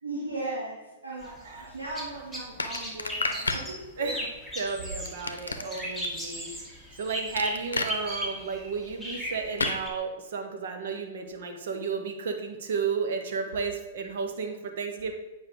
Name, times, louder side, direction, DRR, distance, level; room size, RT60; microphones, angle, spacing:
voice 1, 0.0-4.1 5.5-5.7, right 2 dB, 80° right, -8 dB, 2.4 m, -37 dB
sound 1, 1.2-9.9, equal, 10° right, 2.0 m, -37 dB
sound 2, 2.6-3.7 5.1-6.1 7.4-7.9 9.6-9.8, left 3 dB, 80° left, 0.6 m, -31 dB
voice 2, 4.6-6.7 7.0-15.1, right 5 dB, 60° right, 4 dB, 1.1 m, -32 dB
9.0 x 5.4 x 3.8 m, 1.1 s
figure-of-eight pair, 105°, 0 cm